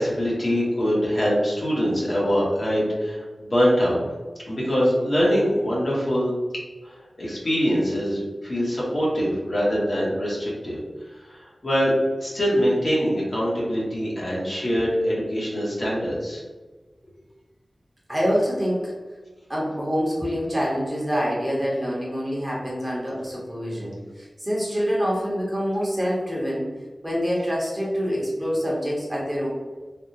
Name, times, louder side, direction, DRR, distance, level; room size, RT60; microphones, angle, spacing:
voice 1, 0.0-4.0 4.4-6.3 6.8-10.8 11.1-16.4, equal, 50° left, -6 dB, 1.1 m, -23 dB
voice 2, 18.1-18.9 19.5-26.6 27.0-29.5, equal, 15° right, -5 dB, 1.0 m, -26 dB
3.4 x 2.3 x 2.7 m, 1.3 s
wide cardioid pair, 80°, 0 cm